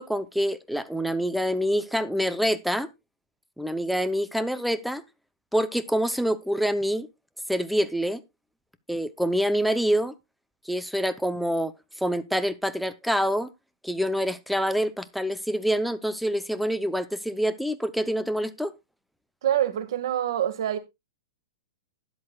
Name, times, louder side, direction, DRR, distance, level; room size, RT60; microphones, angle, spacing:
voice 1, 0.0-2.9 3.6-5.0 5.5-7.1 7.5-8.2 8.9-10.1 10.7-11.7 12.0-13.5 13.8-18.7, equal, ahead, 0.7 m, -26 dB
voice 2, 19.4-20.8, right 11 dB, 65° right, 1.8 m, -25 dB
12.5 x 10.5 x 2.4 m
hypercardioid pair, 150°, 3 cm